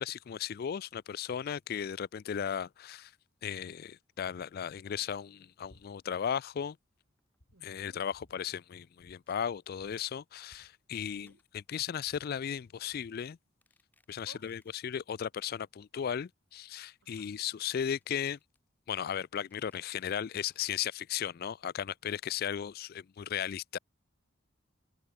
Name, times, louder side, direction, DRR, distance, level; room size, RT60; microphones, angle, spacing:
voice 1, 0.0-3.1 3.4-6.8 7.6-13.4 14.1-18.4 18.9-23.8, left 8 dB, 50° left, 0.3 m, -36 dB
sound 1, 5.6-5.9 6.1-6.7 7.0-7.1 7.4-8.4 9.0-9.2 9.4-9.5 9.7-11.4 11.7-13.2, equal, 75° left, 5.6 m, -62 dB
sound 2, 7.2-7.4 7.7-8.1 8.8-9.6 10.0-10.6 10.8-10.9 11.1-11.6 12.0-12.1 12.5-12.9 13.4-14.9 15.2-15.3 15.6-15.7 16.0-16.1 17.1-18.6 19.2-20.8, left 2 dB, 10° left, 5.2 m, -71 dB
voice 2, 7.5-8.0 11.1-11.4 14.2-14.5 17.0-17.4, right 3 dB, 70° right, 2.3 m, -59 dB
head